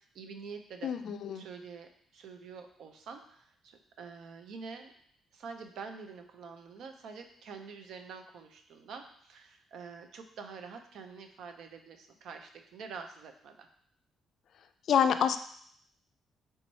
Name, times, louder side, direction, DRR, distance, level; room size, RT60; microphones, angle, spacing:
voice 1, 0.0-0.9 1.3-4.9 5.3-13.7, right 5 dB, 75° right, 6 dB, 0.5 m, -46 dB
voice 2, 0.8-1.4 14.9-15.4, left 8 dB, 65° left, 9 dB, 0.3 m, -27 dB
3.4 x 3.0 x 4.0 m, 0.63 s
cardioid pair, 90°, 0 cm